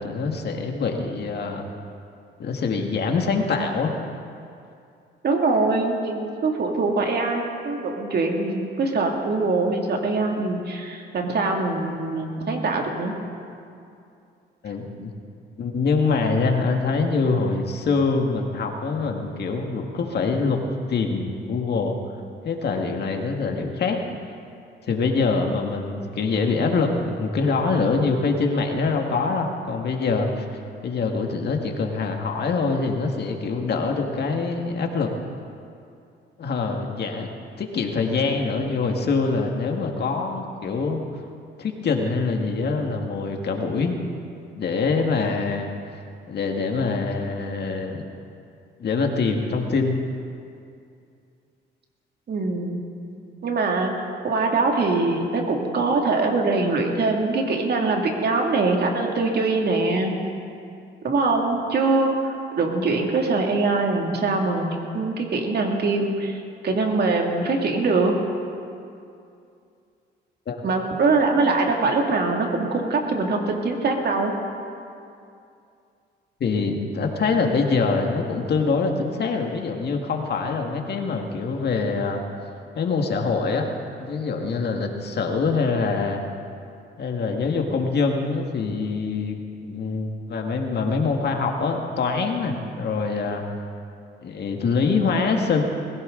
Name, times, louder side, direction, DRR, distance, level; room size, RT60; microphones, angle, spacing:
voice 1, 0.0-1.7 2.4-4.0 14.6-15.1 15.6-20.6 20.9-22.0 22.4-24.0 24.8-30.5 30.8-35.1 36.4-37.3 37.6-41.0 41.6-44.0 44.5-45.7 46.3-48.1 48.8-50.0 70.5-70.6 76.4-82.2 82.8-83.7 84.0-86.2 87.0-93.4 94.2-95.6, left 4 dB, 55° left, 2 dB, 1.9 m, -24 dB
voice 2, 5.2-13.1 52.3-52.8 53.4-53.9 54.2-60.1 61.0-68.2 70.6-74.3, right 3 dB, 55° right, 1 dB, 2.5 m, -23 dB
21.0 x 16.0 x 3.9 m, 2.5 s
cardioid pair, 90°, 20 cm